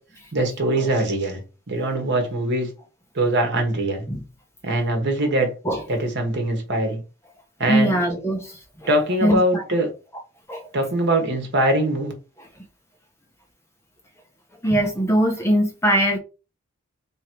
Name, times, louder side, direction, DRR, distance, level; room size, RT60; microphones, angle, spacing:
voice 1, 0.3-1.4 1.7-2.7 3.1-4.0 4.6-5.5 5.9-7.0 7.6-8.0 8.9-9.9 10.7-12.1, right 1 dB, 50° right, 1.3 m, -22 dB
voice 2, 7.7-8.5 8.8-8.9 9.2-9.6 10.5-10.6 12.4-12.5 14.6-16.2, equal, 10° left, 0.9 m, -21 dB
3.5 x 3.1 x 4.5 m
head